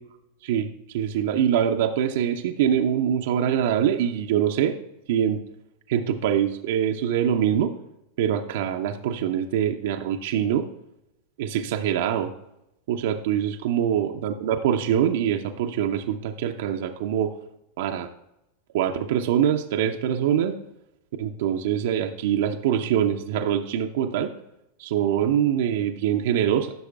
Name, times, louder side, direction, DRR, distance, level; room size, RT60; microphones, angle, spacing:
voice 1, 0.4-4.7 5.1-5.4 5.9-7.7 8.2-10.7 11.4-12.3 12.9-17.3 17.8-18.1 18.7-20.5 21.2-24.3 24.8-26.7, right 9 dB, 55° right, 4 dB, 0.5 m, -24 dB
14.5 x 6.5 x 2.4 m, 0.86 s
figure-of-eight pair, 90°, 0 cm